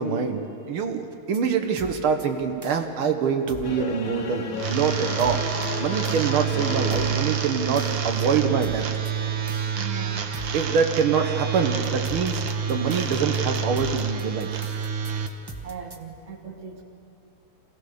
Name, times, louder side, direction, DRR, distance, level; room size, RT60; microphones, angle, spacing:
voice 1, 0.0-5.5 5.8-8.9 10.5-14.5, right 6 dB, 90° right, 5 dB, 2.1 m, -25 dB
sound 1, 1.1-1.4 1.8-2.3 2.6-2.9 3.5-3.8 5.2-5.7 6.0-6.3 6.9-7.2 7.8-8.3 8.6-9.1 9.5-9.7 10.3-10.6 11.8-16.0, right 2 dB, 15° right, 0.8 m, -41 dB
sound 2, 3.6-8.0, left 6 dB, 60° left, 1.7 m, -34 dB
sound 3, 4.5-15.3, right 7 dB, 65° right, 1.8 m, -28 dB
voice 2, 9.8-10.3 15.6-16.8, right 6 dB, 40° right, 4 dB, 1.9 m, -39 dB
26.5 x 16.5 x 6.7 m, 2.7 s
omnidirectional pair, 2.3 m